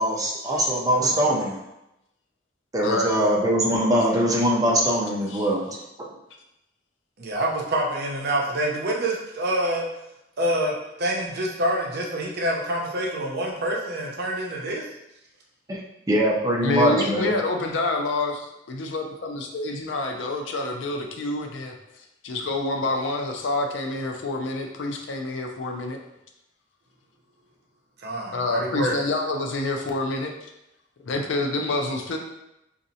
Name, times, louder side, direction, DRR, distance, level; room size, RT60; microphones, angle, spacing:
voice 1, 0.0-1.6 2.7-5.8 15.7-15.8 16.1-17.3, equal, 20° right, -3 dB, 0.6 m, -22 dB
voice 2, 2.8-3.2 5.3-5.5 16.6-18.4 18.7-21.7 22.2-26.0 28.3-30.3 31.0-32.2, left 2 dB, 75° left, 3 dB, 0.5 m, -27 dB
voice 3, 7.2-9.9 10.4-10.7 11.0-14.8 28.0-29.0, right 1 dB, 60° right, -1 dB, 0.7 m, -26 dB
4.0 x 2.5 x 2.7 m, 0.87 s
head